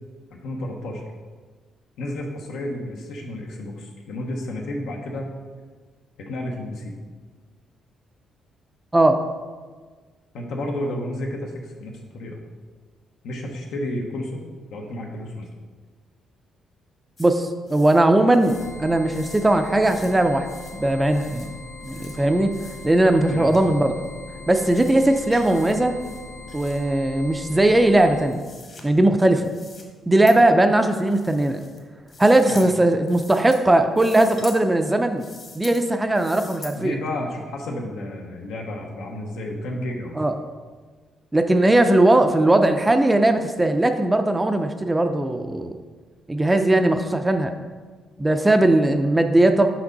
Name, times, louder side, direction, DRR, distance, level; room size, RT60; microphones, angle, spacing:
voice 1, 0.3-1.0 2.0-5.3 6.3-6.9 10.3-12.4 13.2-14.4 14.7-15.5 23.3-23.5 32.5-32.6 36.7-40.2, left 1 dB, 85° left, 0 dB, 0.8 m, -31 dB
sound 1, 17.2-17.3 17.7-18.0 18.3-18.7 19.1-19.5 19.8-20.1 20.4-20.8 21.1-21.5 21.8-22.2 22.5-22.9 23.5-23.6 24.0-24.1 24.6-24.9 25.3-25.7 26.0-26.8 27.6-28.8 29.4-29.8 30.3-30.4 30.9-31.8 32.1-32.7 33.1-33.6 33.9-34.6 35.1-35.8 36.1-36.7, left 3 dB, 40° left, 1.1 m, -44 dB
voice 2, 17.2-20.5 20.7-21.6 21.8-22.5 22.8-24.0 24.5-26.0 26.5-28.4 28.8-29.5 30.1-31.7 32.2-35.2 35.5-37.0 40.2-40.3 41.3-45.8 46.3-47.5 48.2-49.7, right 1 dB, 10° right, 7 dB, 0.3 m, -19 dB
sound 2, 18.4-28.4, left 3 dB, 55° left, 0.7 m, -40 dB
6.0 x 5.2 x 3.9 m, 1.5 s
cardioid pair, 135°, 0 cm